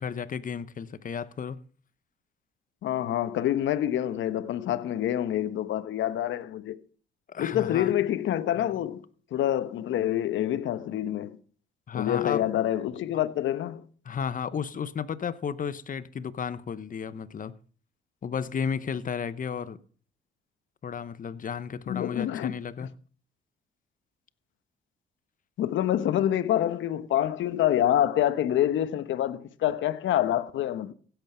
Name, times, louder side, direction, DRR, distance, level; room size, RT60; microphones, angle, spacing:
voice 1, 0.0-1.6 7.3-7.9 11.9-12.4 14.0-17.5 18.2-19.8 20.8-22.9, left 7 dB, 45° left, 0.9 m, -33 dB
voice 2, 2.8-6.8 7.4-9.0 9.3-11.4 11.9-13.9 21.9-22.5 25.6-30.9, left 11 dB, 75° left, 1.1 m, -26 dB
16.0 x 8.1 x 5.6 m
cardioid pair, 90°, 20 cm